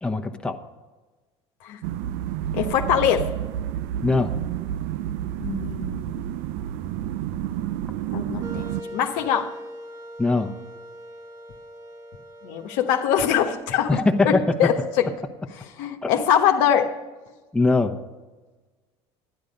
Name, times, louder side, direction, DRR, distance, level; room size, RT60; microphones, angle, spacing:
voice 1, 0.0-0.6 4.0-4.3 10.2-10.5 13.9-14.7 16.0-16.1 17.5-18.0, left 3 dB, 5° left, 2 dB, 1.1 m, -21 dB
sound 1, 1.8-8.8, right 11 dB, 70° right, 0.5 m, -30 dB
voice 2, 2.5-3.3 5.4-6.3 8.1-9.5 12.4-15.1 15.8-16.9, left 9 dB, 70° left, 5 dB, 1.0 m, -23 dB
sound 2, 8.4-15.2, right 1 dB, 25° right, 1.4 m, -41 dB
11.5 x 10.0 x 5.3 m, 1.3 s
hypercardioid pair, 75°, 14 cm